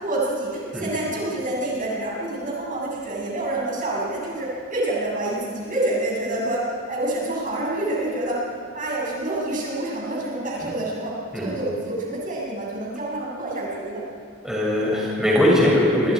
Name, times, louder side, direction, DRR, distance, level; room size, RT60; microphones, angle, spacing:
voice 1, 0.0-8.4 8.7-14.0, right 1 dB, 40° right, -4 dB, 7.0 m, -27 dB
voice 2, 14.4-16.1, left 1 dB, 5° right, -6 dB, 7.4 m, -20 dB
29.0 x 27.0 x 5.0 m, 2.2 s
head